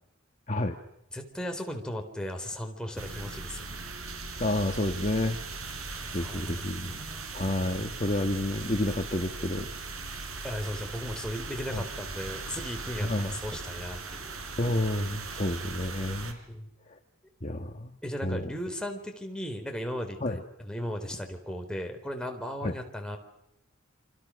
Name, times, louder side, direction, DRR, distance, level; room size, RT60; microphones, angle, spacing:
voice 1, 1.1-3.8 6.0-7.3 10.4-14.3 16.5-16.7 18.0-23.2, equal, 5° left, 3 dB, 4.0 m, -37 dB
sound 1, 3.0-16.3, right 3 dB, 80° right, 4.3 m, -39 dB
voice 2, 4.4-5.4 6.1-7.0 7.3-10.0 11.7-11.8 13.0-13.3 14.6-16.4 16.9-17.0 17.4-17.9 18.2-18.5 20.2-20.4 22.6-22.7, left 1 dB, 35° left, 5 dB, 1.5 m, -30 dB
28.5 x 26.5 x 6.4 m, 0.80 s
head